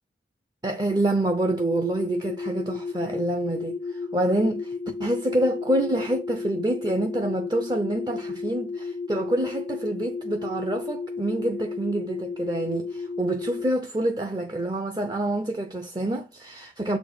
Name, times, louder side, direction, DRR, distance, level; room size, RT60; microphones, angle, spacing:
voice 1, 0.6-17.0, right 1 dB, 20° right, 0.6 m, -27 dB
sound 1, 1.7-13.7, left 4 dB, 35° left, 0.3 m, -33 dB
7.4 x 4.2 x 4.8 m
head